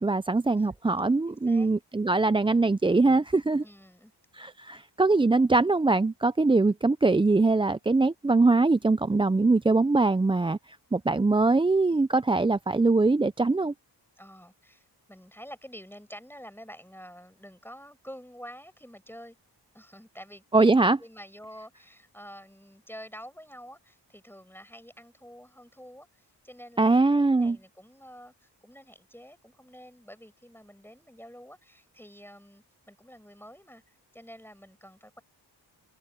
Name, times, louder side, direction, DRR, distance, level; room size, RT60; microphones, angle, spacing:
voice 1, 0.0-3.6 4.3-13.7 20.5-21.0 26.8-27.6, right 3 dB, 10° right, 0.4 m, -22 dB
voice 2, 0.6-1.0 1.3-1.7 3.6-4.1 14.2-19.4 19.7-35.2, equal, 5° left, 5.3 m, -48 dB
cardioid pair, 60°, 43 cm